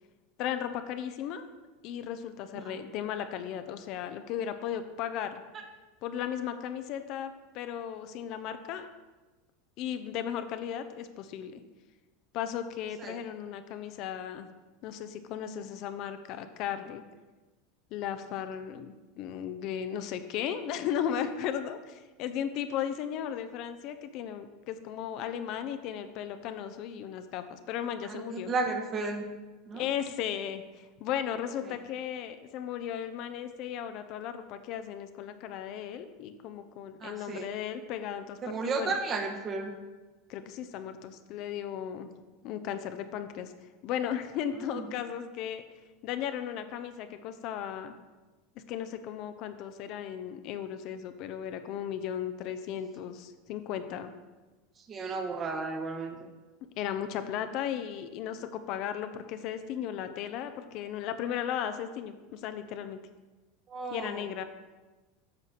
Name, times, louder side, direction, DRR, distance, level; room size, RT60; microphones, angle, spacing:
voice 1, 0.4-1.5 1.8-5.4 6.0-8.9 9.8-11.6 12.3-14.5 14.8-17.0 17.9-28.6 29.7-39.0 40.3-42.1 42.4-43.5 43.8-45.6 46.0-47.9 48.7-54.1 56.8-63.0 63.9-64.4, left 9 dB, 50° left, 9 dB, 0.6 m, -36 dB
voice 2, 28.1-29.2 29.7-29.9 37.0-37.4 38.4-39.7 44.7-44.8 54.9-56.3 63.7-64.2, right 4 dB, 35° right, 4 dB, 1.2 m, -33 dB
9.6 x 6.5 x 4.2 m, 1.2 s
hypercardioid pair, 85°, 0 cm